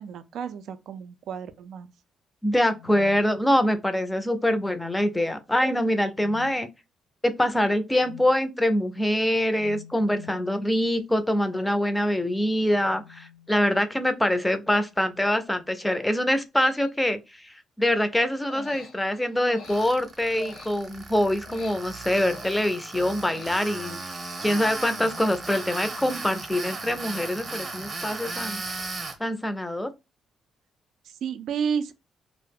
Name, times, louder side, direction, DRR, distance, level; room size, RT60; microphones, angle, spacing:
voice 1, 0.0-1.9 31.1-31.9, right 7 dB, 75° right, 0.3 m, -31 dB
voice 2, 2.4-6.7 7.2-24.2 24.4-28.6 29.2-29.9, left 1 dB, 10° left, 0.4 m, -24 dB
sound 1, 2.6-3.9 4.5-5.3 6.1-6.6 8.0-8.4 9.5-10.5 12.0-13.9 14.9-15.4 16.6-16.9, left 12 dB, 90° left, 0.4 m, -48 dB
Human voice, 18.4-21.1 21.4-23.9, left 4 dB, 65° left, 0.8 m, -45 dB
Tools, 19.6-29.2, right 3 dB, 35° right, 0.7 m, -36 dB
2.3 x 2.0 x 3.4 m
cardioid pair, 90°, 0 cm